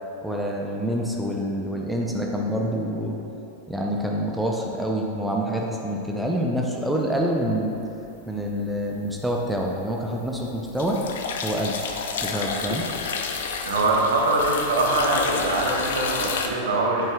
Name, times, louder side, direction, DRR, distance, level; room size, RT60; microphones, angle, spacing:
voice 1, 0.2-3.2 3.7-7.7 8.3-11.0 11.4-11.8 12.2-12.9, equal, 5° right, -1 dB, 0.7 m, -26 dB
sound 1, 8.3-8.9 9.3-16.5, left 5 dB, 60° left, 0.6 m, -30 dB
voice 2, 13.6-17.1, right 2 dB, 65° right, -2 dB, 1.4 m, -23 dB
8.8 x 8.7 x 2.4 m, 2.8 s
figure-of-eight pair, 90°, 0 cm